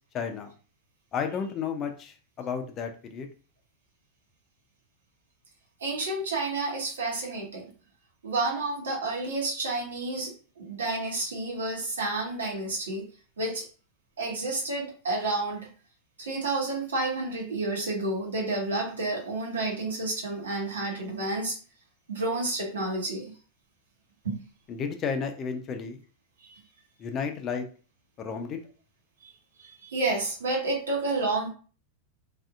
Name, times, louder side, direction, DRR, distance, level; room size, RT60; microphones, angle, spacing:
voice 1, 0.1-0.5 1.1-3.3 24.7-26.0 27.0-27.7 28.2-28.6, left 6 dB, 35° left, 6 dB, 0.6 m, -32 dB
voice 2, 5.8-7.7 8.2-13.1 13.4-13.6 14.2-15.7 16.2-21.5 22.1-23.2 24.2-24.4 26.4-26.6 29.2-29.3 29.6-31.5, right 2 dB, 80° right, -2 dB, 1.3 m, -30 dB
3.3 x 2.7 x 2.4 m, 0.38 s
hypercardioid pair, 95°, 0 cm